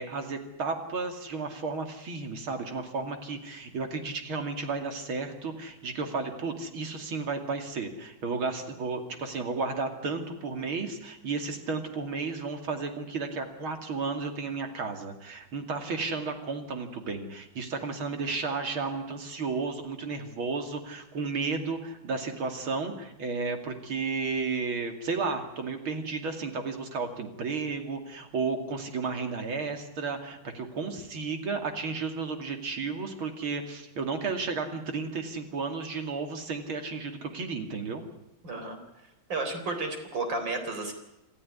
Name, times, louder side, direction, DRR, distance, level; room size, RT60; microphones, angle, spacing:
voice 1, 0.0-38.0, right 4 dB, 85° right, 5 dB, 3.4 m, -33 dB
voice 2, 38.4-38.8 39.3-40.9, right 3 dB, 60° right, 6 dB, 4.7 m, -32 dB
27.5 x 14.0 x 9.7 m, 0.93 s
omnidirectional pair, 2.2 m